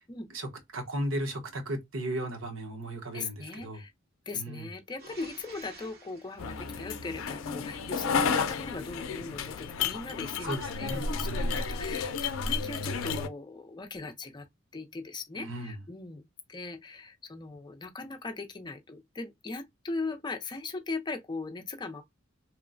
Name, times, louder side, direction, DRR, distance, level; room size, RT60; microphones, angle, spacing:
voice 1, 0.3-3.8 4.3-4.7 10.4-11.7 15.3-15.8, right 1 dB, 80° right, 0.9 m, -36 dB
voice 2, 3.1-3.9 4.3-14.5 14.7-22.0, left 3 dB, 20° left, 0.5 m, -39 dB
sound 1, 5.0-7.7 10.1-11.5, right 2 dB, 55° right, 1.2 m, -52 dB
sound 2, 6.4-13.3, left 5 dB, 85° left, 0.4 m, -32 dB
3.0 x 2.1 x 2.4 m
head